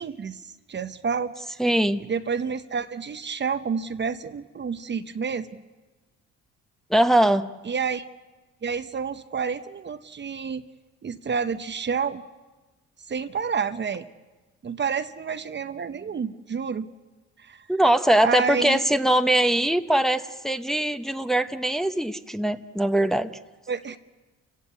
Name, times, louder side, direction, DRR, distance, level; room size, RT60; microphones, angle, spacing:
voice 1, 0.0-1.6 2.0-5.6 7.7-8.0 8.6-10.6 11.0-12.2 13.1-14.0 14.6-16.9 17.4-17.7 18.2-18.8 23.7-24.0, right 6 dB, 35° right, 10 dB, 0.8 m, -29 dB
voice 2, 1.6-2.0 6.9-7.5 17.7-23.3, right 1 dB, ahead, 8 dB, 0.9 m, -21 dB
29.5 x 16.0 x 8.5 m, 1.2 s
cardioid pair, 90°, 30 cm